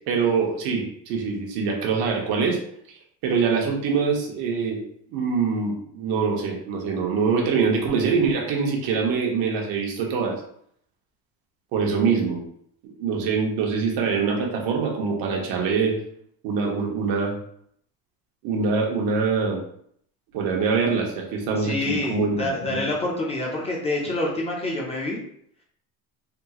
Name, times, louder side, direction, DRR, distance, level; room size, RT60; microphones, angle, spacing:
voice 1, 0.1-2.6 3.2-4.8 5.1-10.4 11.7-12.4 12.8-16.0 16.4-17.3 18.4-19.6 20.3-22.9, right 5 dB, 80° right, 0 dB, 1.0 m, -24 dB
voice 2, 21.6-25.2, left 2 dB, 20° left, -2 dB, 0.4 m, -27 dB
3.5 x 2.4 x 2.9 m, 0.66 s
cardioid pair, 165°, 36 cm